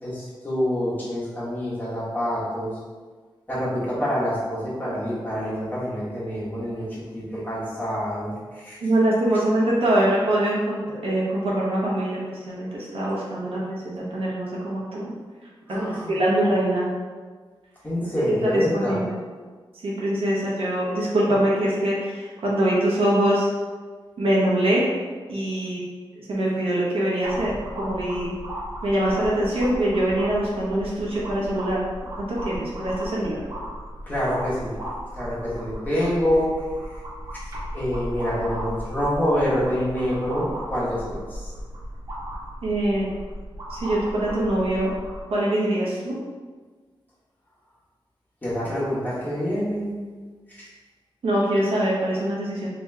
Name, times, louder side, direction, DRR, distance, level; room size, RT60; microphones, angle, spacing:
voice 1, 0.0-2.7 3.5-8.8 15.7-16.2 17.8-19.0 34.0-34.7 35.1-36.5 36.8-37.0 37.7-41.5 48.4-49.9 50.5-50.7, equal, 20° left, -9 dB, 1.5 m, -26 dB
voice 2, 8.8-15.1 15.8-16.9 18.5-19.2 19.8-23.5 24.2-24.8 25.3-25.8 26.1-28.4 28.8-31.8 32.2-33.4 42.6-43.1 43.7-44.9 45.3-46.2 51.2-52.7, right 1 dB, 80° right, -6 dB, 1.1 m, -23 dB
sound 1, 27.2-45.2, equal, 40° right, 1.2 m, -36 dB
3.4 x 3.0 x 3.5 m, 1.5 s
wide cardioid pair, 100°, 9 cm